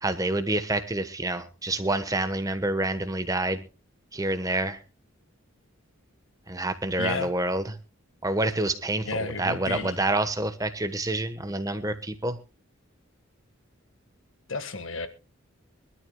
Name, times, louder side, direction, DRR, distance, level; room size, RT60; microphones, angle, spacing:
voice 1, 0.0-3.6 4.1-4.8 6.5-7.8 8.2-12.4, right 2 dB, 15° right, 10 dB, 1.2 m, -28 dB
voice 2, 7.0-7.3 9.0-10.0 14.5-15.1, left 3 dB, 65° left, 10 dB, 1.6 m, -32 dB
24.0 x 13.0 x 2.3 m, 0.31 s
head